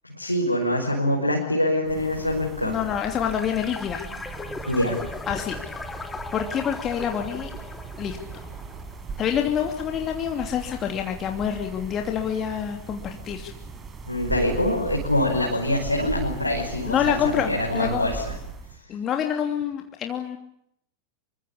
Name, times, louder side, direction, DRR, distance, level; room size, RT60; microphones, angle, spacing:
voice 1, 0.0-2.8 4.7-5.0 14.1-18.3, left 1 dB, 90° left, -1 dB, 5.5 m, -24 dB
sound 1, 1.8-18.8, right 5 dB, 25° right, 5.3 m, -38 dB
voice 2, 2.6-4.1 5.3-5.6 6.3-7.5 8.0-8.2 9.2-13.5 16.9-18.1 18.9-20.4, left 9 dB, 30° left, 4 dB, 2.9 m, -27 dB
sound 2, 3.3-9.0, left 4 dB, 10° left, 2.9 m, -38 dB
27.0 x 24.0 x 8.6 m, 0.73 s
figure-of-eight pair, 90°, 0 cm